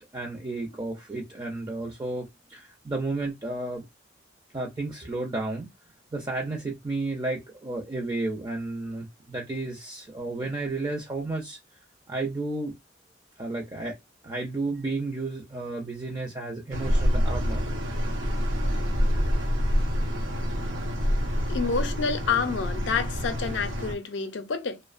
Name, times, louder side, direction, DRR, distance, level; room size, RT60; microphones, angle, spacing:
voice 1, 0.1-3.9 4.5-5.7 6.1-11.6 12.1-12.7 13.4-13.9 14.2-17.6, right 2 dB, 20° right, 0.4 m, -32 dB
sound 1, 16.7-23.9, equal, 85° right, 0.7 m, -26 dB
voice 2, 21.5-24.8, left 5 dB, 70° left, 0.5 m, -28 dB
2.7 x 2.0 x 2.3 m
head